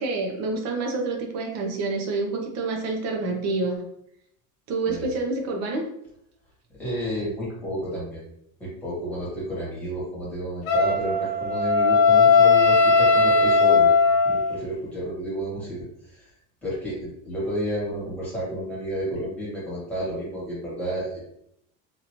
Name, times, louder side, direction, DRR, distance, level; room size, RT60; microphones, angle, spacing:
voice 1, 0.0-3.9 4.7-5.8, right 3 dB, 45° right, 1 dB, 0.7 m, -27 dB
voice 2, 6.8-8.2 8.6-13.9 14.2-15.8 16.6-21.2, equal, 5° left, -8 dB, 1.4 m, -31 dB
Wind instrument woodwind instrument, 10.7-14.6, left 4 dB, 60° left, 0.8 m, -18 dB
2.9 x 2.5 x 2.9 m, 0.73 s
cardioid pair, 175°, 38 cm